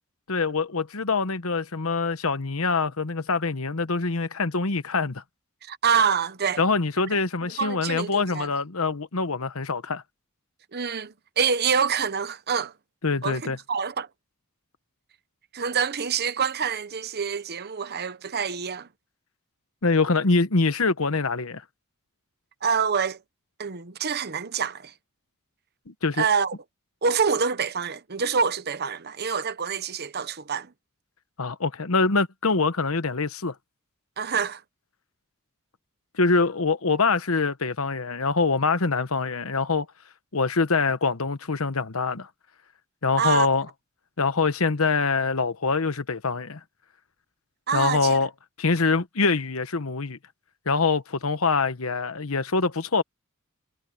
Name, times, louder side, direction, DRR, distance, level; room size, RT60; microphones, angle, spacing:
voice 1, 0.3-5.2 6.6-10.0 13.0-13.6 19.8-21.6 25.9-26.2 31.4-33.5 36.2-39.9 40.3-42.3 43.0-43.7 44.2-46.6 47.7-48.3 48.6-50.2 50.7-53.0, left 4 dB, 70° left, 1.1 m, -24 dB
voice 2, 5.7-6.6 7.1-7.2 7.6-8.5 10.7-12.7 13.2-14.1 15.5-18.9 22.6-23.2 23.6-24.9 26.2-26.6 27.0-30.7 34.2-34.6 43.2-43.5 47.7-48.2, right 6 dB, 45° right, 1.0 m, -26 dB
head